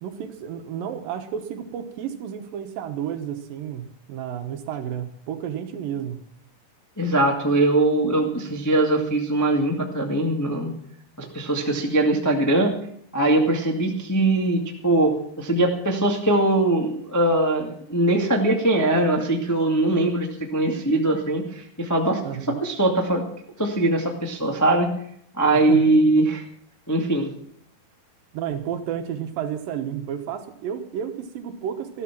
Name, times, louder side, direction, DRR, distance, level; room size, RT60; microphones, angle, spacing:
voice 1, 0.0-6.2 22.2-22.6 25.5-26.0 28.3-32.0, right 9 dB, 70° right, 7 dB, 2.7 m, -31 dB
voice 2, 7.0-10.7 11.2-12.7 13.1-22.2 22.6-23.2 23.6-24.9 25.3-26.4 26.9-27.3, right 2 dB, 20° left, 1 dB, 0.4 m, -21 dB
14.0 x 12.5 x 6.0 m, 0.67 s
omnidirectional pair, 4.5 m